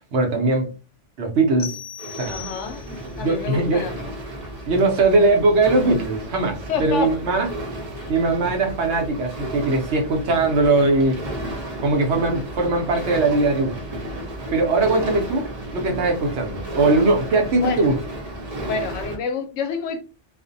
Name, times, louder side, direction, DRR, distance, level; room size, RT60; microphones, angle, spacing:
voice 1, 0.1-0.7 1.2-1.8 2.1-2.4 3.2-3.9 4.7-7.5 8.1-11.2 11.8-13.8 14.5-18.0, right 3 dB, 70° right, 0.9 m, -20 dB
sound 1, 1.6-3.1, left 7 dB, 35° left, 0.7 m, -37 dB
sound 2, 2.0-19.2, right 1 dB, 40° right, 0.7 m, -33 dB
voice 2, 2.3-2.8 3.2-4.1 6.7-7.1 8.0-8.1 17.6-17.9 18.6-20.0, left 5 dB, 80° left, 0.9 m, -28 dB
2.5 x 2.0 x 2.5 m
omnidirectional pair, 1.2 m